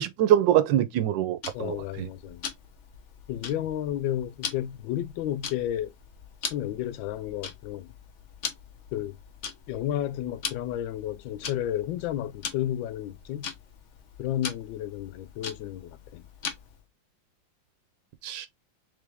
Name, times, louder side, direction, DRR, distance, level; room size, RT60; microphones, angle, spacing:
voice 1, 0.0-2.1 18.2-18.5, right 11 dB, 75° right, 1.3 m, -24 dB
Tick-tock, 1.4-16.8, left 6 dB, 55° left, 0.8 m, -41 dB
voice 2, 1.5-2.4 3.3-5.9 6.5-7.9 8.9-9.2 9.7-13.5 14.2-16.2, left 12 dB, 80° left, 1.3 m, -32 dB
3.7 x 3.4 x 3.4 m
omnidirectional pair, 2.1 m